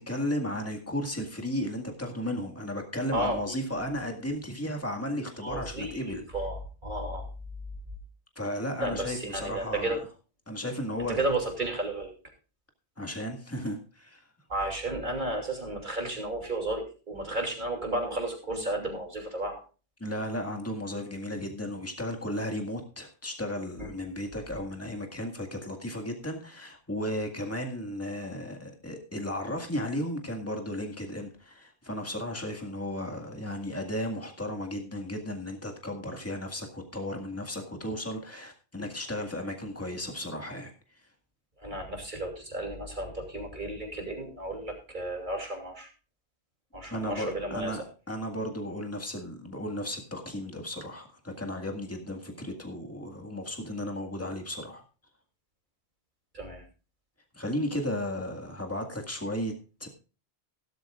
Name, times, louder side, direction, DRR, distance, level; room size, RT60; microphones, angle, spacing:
voice 1, 0.1-6.2 8.4-10.0 10.5-11.2 13.0-14.3 20.0-40.7 46.9-54.8 57.3-59.5 59.8-59.9, left 1 dB, 15° left, 2 dB, 1.9 m, -34 dB
voice 2, 3.1-3.6 5.4-7.3 8.8-10.0 11.1-12.1 14.5-19.6 23.8-23.9 41.6-45.9 46.7-47.8 56.3-56.6, right 1 dB, 45° right, 1 dB, 2.9 m, -33 dB
16.0 x 12.5 x 2.4 m, 0.34 s
omnidirectional pair, 1.1 m